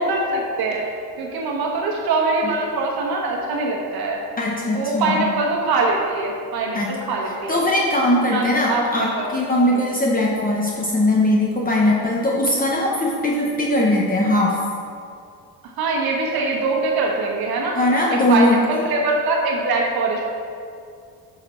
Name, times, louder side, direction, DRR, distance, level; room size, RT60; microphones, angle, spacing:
voice 1, 0.0-4.2 4.7-7.7 8.3-9.3 9.7-9.9 15.6-17.8 18.3-20.2, right 3 dB, 65° right, -1 dB, 1.3 m, -23 dB
voice 2, 4.4-5.3 6.7-6.9 7.5-14.6 17.8-18.6, left 1 dB, 20° left, -3 dB, 0.8 m, -20 dB
7.6 x 6.3 x 4.3 m, 2.4 s
cardioid pair, 140°, 39 cm